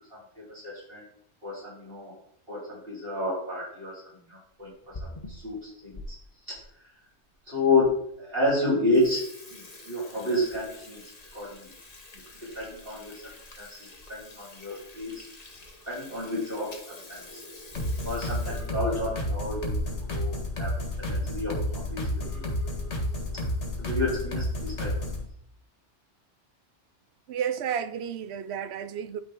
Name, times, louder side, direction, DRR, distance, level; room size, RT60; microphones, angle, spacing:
voice 1, 0.1-1.0 1.4-2.1 2.5-4.0 4.3-4.7 5.0-6.2 6.5-6.6 7.5-9.2 9.5-11.0 11.3-11.7 12.4-13.2 13.6-15.2 15.8-17.4 18.0-19.8 20.1-22.1 22.3-22.5 23.8-24.9, left 2 dB, 55° right, 4.4 m, -30 dB
Water tap faucet / Sink (filling or washing), 4.6-6.1 6.6-6.7 7.4-7.5 7.8-7.9 8.3-8.5 8.8-20.2 20.5-20.6 20.9-21.0 21.8-22.1 22.5-22.9, left 2 dB, 35° left, 1.2 m, -45 dB
sound 1, 17.7-25.3, left 1 dB, 80° left, 2.0 m, -31 dB
voice 2, 27.3-29.2, right 8 dB, 70° right, 0.8 m, -31 dB
12.0 x 4.7 x 3.8 m
omnidirectional pair, 1.2 m